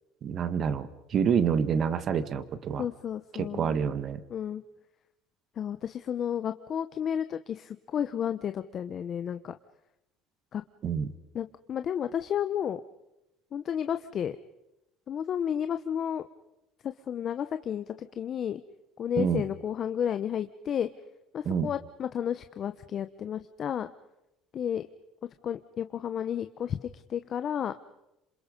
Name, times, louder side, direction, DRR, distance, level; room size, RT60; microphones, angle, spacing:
voice 1, 0.2-2.8 3.4-4.2 10.8-11.1 19.2-19.4 21.4-21.7, right 7 dB, 45° right, 13 dB, 1.7 m, -27 dB
voice 2, 2.8-3.8 4.3-4.6 5.6-9.5 10.5-10.6 11.3-12.8 13.5-14.4 15.1-16.2 16.8-18.6 19.0-20.9 21.3-23.9 24.5-24.9 25.4-27.7, left 9 dB, 45° left, 10 dB, 0.9 m, -32 dB
27.5 x 27.0 x 5.4 m, 0.91 s
cardioid pair, 120°, 0 cm